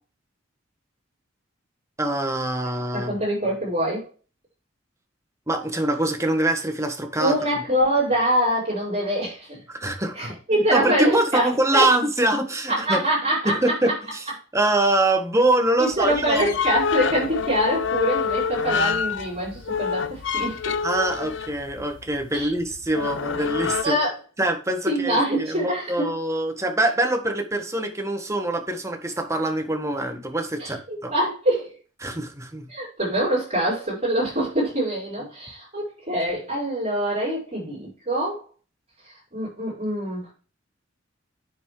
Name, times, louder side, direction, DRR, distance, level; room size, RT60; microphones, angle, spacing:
voice 1, 2.0-3.1 5.5-7.3 9.7-13.0 13.4-14.2 14.5-16.6 20.8-23.9 24.4-31.1 32.0-32.7, right 2 dB, 15° right, 5 dB, 1.4 m, -24 dB
voice 2, 2.9-4.1 7.2-9.6 10.1-11.9 12.7-13.5 15.8-20.8 22.3-22.5 23.8-24.1 24.9-26.1 30.6-31.7 32.7-38.4 39.3-40.3, right 1 dB, 35° right, -7 dB, 4.8 m, -24 dB
sound 1, 15.9-23.8, left 6 dB, 70° left, 0.6 m, -27 dB
9.3 x 5.9 x 3.2 m, 0.36 s
head